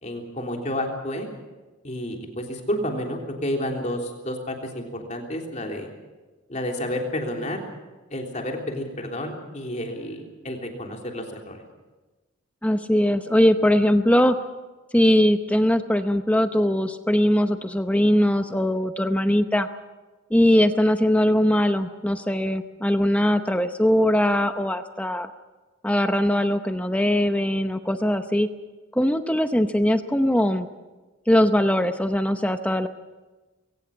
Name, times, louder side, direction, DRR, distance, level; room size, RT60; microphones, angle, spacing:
voice 1, 0.0-1.3 1.8-5.9 6.5-7.6 8.1-11.6, left 1 dB, 35° left, 1 dB, 3.4 m, -30 dB
voice 2, 12.6-14.4 14.9-19.7 20.3-25.3 25.8-28.5 28.9-30.7 31.3-32.9, equal, 5° left, 8 dB, 0.7 m, -21 dB
22.0 x 18.0 x 7.1 m, 1.2 s
head